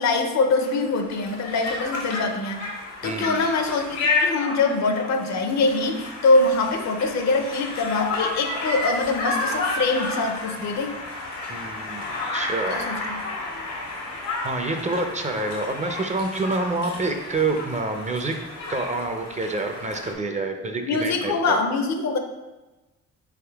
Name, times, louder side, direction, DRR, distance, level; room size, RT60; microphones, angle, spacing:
voice 1, 0.0-2.7 3.0-11.0 12.7-13.2 20.8-22.2, left 3 dB, 65° left, 6 dB, 0.6 m, -23 dB
Conversation, 0.6-20.1, left 3 dB, 90° left, 1.3 m, -31 dB
voice 2, 3.0-3.4 11.5-12.0 12.3-12.8 14.4-18.4 18.7-21.6, right 3 dB, 25° right, 5 dB, 0.5 m, -27 dB
4.1 x 3.6 x 3.4 m, 1.1 s
cardioid pair, 90°, 30 cm